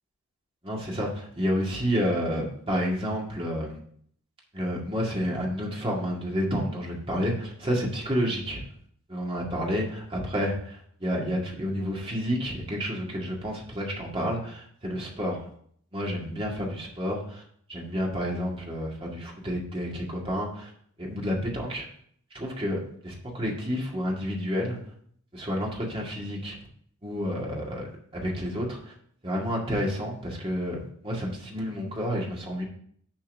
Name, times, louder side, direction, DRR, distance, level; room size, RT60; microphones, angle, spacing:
voice 1, 0.6-3.8 4.5-8.6 9.1-15.5 15.9-17.4 17.7-20.7 21.0-21.9 22.3-24.8 25.3-26.6 27.0-28.9 29.2-32.6, equal, 25° right, -2 dB, 2.0 m, -30 dB
7.6 x 4.5 x 6.4 m, 0.63 s
head